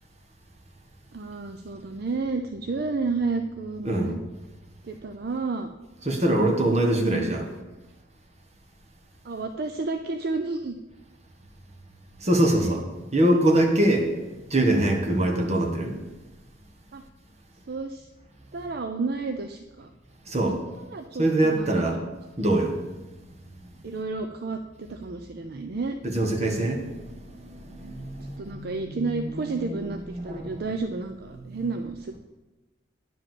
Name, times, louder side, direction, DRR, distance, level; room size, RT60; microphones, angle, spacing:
voice 1, 1.1-4.2 4.8-5.7 7.0-7.6 9.2-10.8 12.4-12.7 15.1-15.3 16.9-17.0 17.7-18.1 18.5-19.9 20.8-22.0 23.8-26.0 28.4-32.2, right 3 dB, 55° right, 7 dB, 0.5 m, -31 dB
voice 2, 6.0-7.4 12.2-12.8 13.1-16.0 20.3-20.6 21.2-22.0 22.4-22.8 23.4-23.5 26.0-29.9 30.1-30.5 31.4-31.6, right 1 dB, 35° right, 2 dB, 1.5 m, -24 dB
9.9 x 5.0 x 7.7 m, 1.1 s
head